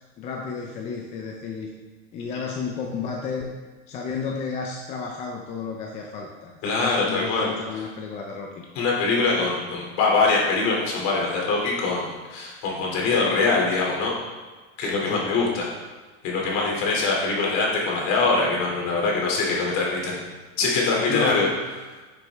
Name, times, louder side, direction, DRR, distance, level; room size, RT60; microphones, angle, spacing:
voice 1, 0.2-1.7 2.1-3.5 3.9-8.6 15.1-15.3 21.1-21.6, left 5 dB, 20° left, 1 dB, 0.4 m, -32 dB
voice 2, 6.6-7.5 8.7-14.1 14.8-15.7 16.2-20.2 20.6-21.5, left 3 dB, 40° left, -2 dB, 2.7 m, -23 dB
11.0 x 6.7 x 3.5 m, 1.3 s
supercardioid pair, 160°, 39 cm